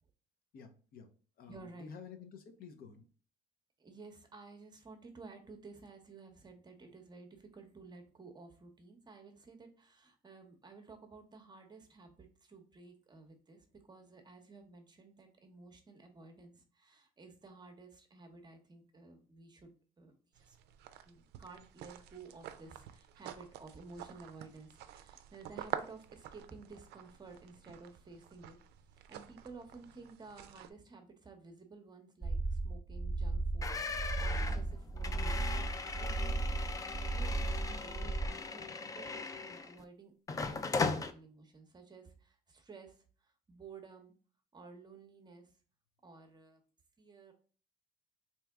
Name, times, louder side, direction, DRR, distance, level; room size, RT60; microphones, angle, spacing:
voice 1, 0.5-1.1 1.4-3.0, left 6 dB, 60° left, 5 dB, 0.7 m, -51 dB
voice 2, 1.5-1.9 3.8-20.6 21.0-28.6 29.1-40.1 40.5-43.0 43.2-44.1 44.5-45.5 46.0-46.6 47.0-47.3, right 4 dB, 25° right, 5 dB, 0.8 m, -54 dB
sound 1, 20.3-30.7, right 11 dB, 80° right, 0.4 m, -48 dB
sound 2, 32.2-38.3, right 2 dB, ahead, 0.8 m, -35 dB
sound 3, 33.6-39.8 40.3-41.1, left 4 dB, 20° left, 0.3 m, -38 dB
3.4 x 2.9 x 3.5 m, 0.40 s
cardioid pair, 110°, 17 cm